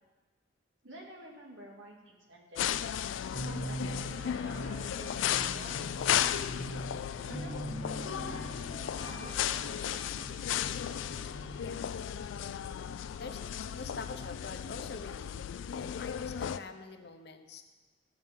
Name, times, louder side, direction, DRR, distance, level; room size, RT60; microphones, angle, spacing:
voice 1, 0.8-2.9 3.4-6.5 7.3-10.5, right 1 dB, 90° right, -1 dB, 2.0 m, -50 dB
sound 1, 2.6-16.6, left 9 dB, 90° left, 0.3 m, -35 dB
sound 2, 3.3-13.1, right 2 dB, 35° right, 3.1 m, -44 dB
voice 2, 11.6-12.6 13.2-17.6, left 3 dB, 60° left, 5 dB, 0.8 m, -46 dB
13.0 x 7.9 x 3.6 m, 1.3 s
head